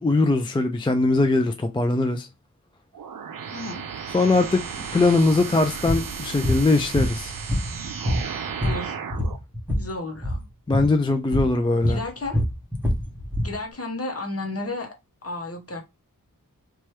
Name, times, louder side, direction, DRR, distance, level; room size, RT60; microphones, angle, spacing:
voice 1, 0.0-2.3 4.1-4.6 4.9-7.3 10.7-12.0, left 3 dB, 15° left, 0.3 m, -21 dB
sound 1, 2.9-9.4, right 6 dB, 70° right, 0.5 m, -34 dB
voice 2, 3.5-3.8 8.6-9.0 9.7-10.4 11.8-12.4 13.4-14.9 15.2-15.8, left 2 dB, 45° left, 0.9 m, -32 dB
sound 2, 5.9-6.1 6.4-6.6 7.0-7.8 8.1-9.9 10.2-10.4 10.7-10.9 11.3-11.5 11.8-13.5, left 1 dB, 5° right, 1.1 m, -25 dB
2.9 x 2.3 x 3.1 m
wide cardioid pair, 80°, 35 cm